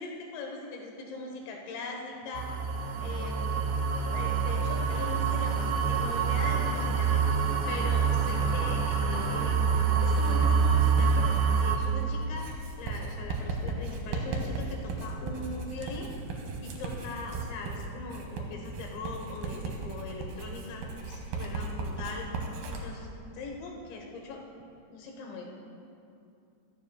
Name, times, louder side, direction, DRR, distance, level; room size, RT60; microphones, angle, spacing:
voice 1, 0.0-2.6 3.0-3.6 4.1-16.1 16.6-22.3 22.7-23.1 23.3-24.4 24.9-25.5, left 3 dB, 75° left, 1 dB, 3.4 m, -40 dB
sound 1, 2.4-11.8, right 6 dB, 90° right, 2.2 m, -26 dB
Writing, 8.2-22.8, right 3 dB, 70° right, 2.5 m, -37 dB
14.0 x 13.0 x 2.3 m, 2.6 s
omnidirectional pair, 5.3 m